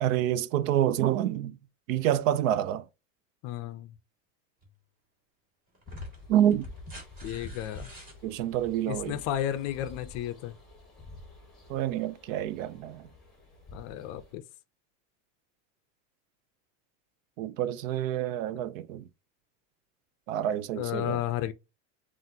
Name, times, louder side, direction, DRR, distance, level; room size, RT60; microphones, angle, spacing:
voice 1, 0.0-1.6 1.9-2.8 6.3-6.7 8.2-9.2 11.7-13.1 17.4-19.1 20.3-21.2, right 11 dB, 85° right, 0.7 m, -27 dB
voice 2, 3.4-3.9 7.2-7.9 8.8-10.6 13.7-14.4 20.8-21.5, left 12 dB, 40° left, 0.5 m, -33 dB
sound 1, 4.6-4.7 5.7-8.2 9.7-9.8, right 1 dB, 20° right, 2.4 m, -50 dB
sound 2, 5.8-14.3, left 2 dB, ahead, 1.8 m, -48 dB
7.5 x 2.6 x 2.7 m
supercardioid pair, 160°, 38 cm